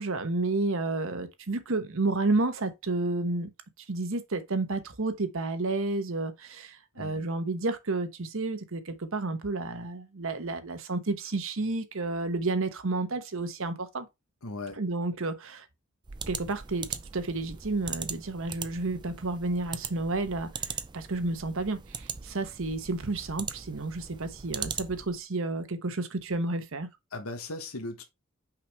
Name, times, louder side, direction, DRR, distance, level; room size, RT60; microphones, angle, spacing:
voice 1, 0.0-3.5 3.9-14.1 14.8-15.7 16.3-26.9, right 3 dB, 65° right, 1.1 m, -31 dB
voice 2, 7.0-7.3 14.4-14.8 27.1-28.0, left 2 dB, 80° left, 1.2 m, -38 dB
sound 1, 16.0-25.2, right 6 dB, 20° right, 0.5 m, -40 dB
5.9 x 4.9 x 3.4 m
head